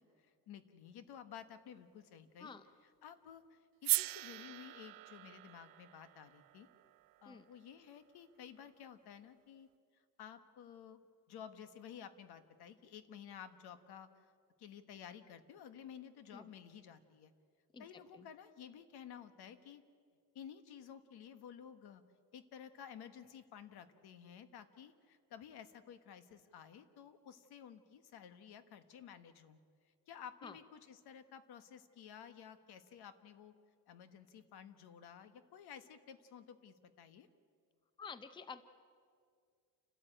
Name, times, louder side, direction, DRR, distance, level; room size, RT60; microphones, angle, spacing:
voice 1, 0.0-2.5 3.0-6.7 7.2-9.7 10.2-14.3 14.6-17.3 17.8-19.8 20.3-22.0 22.3-29.6 30.1-33.5 33.9-37.3, left 8 dB, 75° left, 11 dB, 1.4 m, -53 dB
sound 1, 3.8-8.0, right 18 dB, 60° right, 0.5 m, -40 dB
voice 2, 17.7-18.3 30.4-30.6 38.0-38.6, left 5 dB, 10° left, 12 dB, 0.6 m, -50 dB
29.0 x 13.0 x 9.0 m, 2.2 s
cardioid pair, 165°, 39 cm